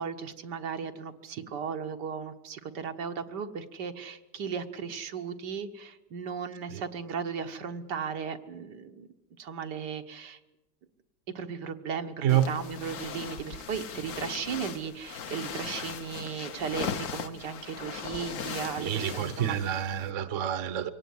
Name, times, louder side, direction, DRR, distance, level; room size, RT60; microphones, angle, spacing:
voice 1, 0.0-9.1 9.4-10.4 11.4-19.8, right 6 dB, 75° right, 6 dB, 1.8 m, -36 dB
sound 1, 12.3-20.1, left 7 dB, 55° left, 1.3 m, -39 dB
voice 2, 18.8-20.9, right 10 dB, 50° right, 13 dB, 1.2 m, -28 dB
23.5 x 18.0 x 9.5 m, 1.0 s
omnidirectional pair, 1.8 m